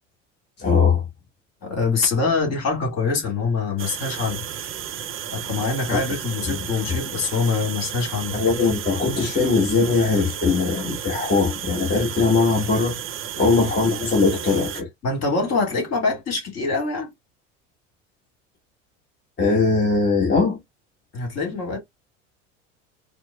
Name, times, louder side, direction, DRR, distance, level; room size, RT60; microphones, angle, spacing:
voice 1, 0.6-1.0 5.9-6.0 6.5-6.6 8.3-13.0 13.4-14.9 19.4-20.6, left 4 dB, 25° left, 1.4 m, -20 dB
voice 2, 1.6-4.4 5.3-8.4 15.0-17.1 21.1-21.8, left 4 dB, 40° left, 1.9 m, -24 dB
sound 1, 3.8-14.8, right 9 dB, 35° right, 0.6 m, -33 dB
4.4 x 2.0 x 2.3 m
hypercardioid pair, 80°, 37 cm